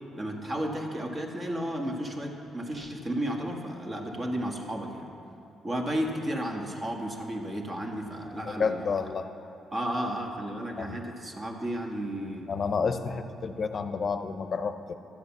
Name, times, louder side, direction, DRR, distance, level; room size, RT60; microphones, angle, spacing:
voice 1, 0.1-5.0 5.6-8.9 9.7-12.5, right 1 dB, 30° right, 1 dB, 1.7 m, -33 dB
voice 2, 8.5-9.3 10.8-11.0 12.5-14.9, left 5 dB, 45° left, 9 dB, 0.8 m, -30 dB
12.0 x 8.2 x 7.2 m, 2.9 s
cardioid pair, 90°, 0 cm